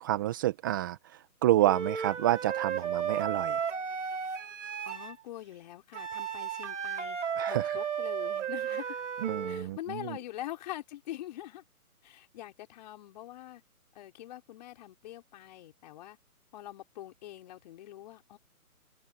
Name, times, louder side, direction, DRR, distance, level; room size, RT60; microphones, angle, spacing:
voice 1, 0.0-3.6 7.4-7.8 9.2-10.2, right 14 dB, 15° right, 1.0 m, -29 dB
Wind instrument woodwind instrument, 1.6-5.1 5.9-9.7, right 7 dB, 55° right, 3.0 m, -34 dB
voice 2, 4.8-7.2 7.5-9.0 9.5-11.6 12.0-13.6 13.9-16.2 16.5-18.4, left 14 dB, 30° left, 4.9 m, -44 dB
open air
figure-of-eight pair, 155°, 44 cm